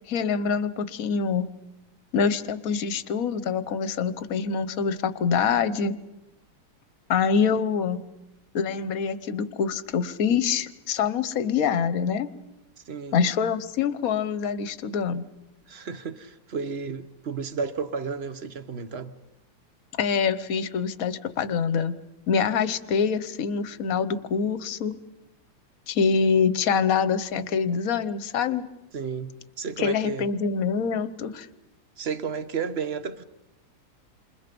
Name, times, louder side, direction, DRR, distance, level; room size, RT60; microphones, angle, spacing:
voice 1, 0.1-1.5 2.1-6.0 7.1-8.0 8.5-12.3 13.1-15.3 20.0-22.0 22.3-24.9 25.9-28.6 29.8-31.5, left 6 dB, 50° left, 1.3 m, -25 dB
voice 2, 12.8-13.2 15.7-19.1 28.9-29.3 29.6-30.3 32.0-33.2, right 5 dB, 40° right, 1.0 m, -32 dB
28.5 x 28.0 x 5.3 m
omnidirectional pair, 2.3 m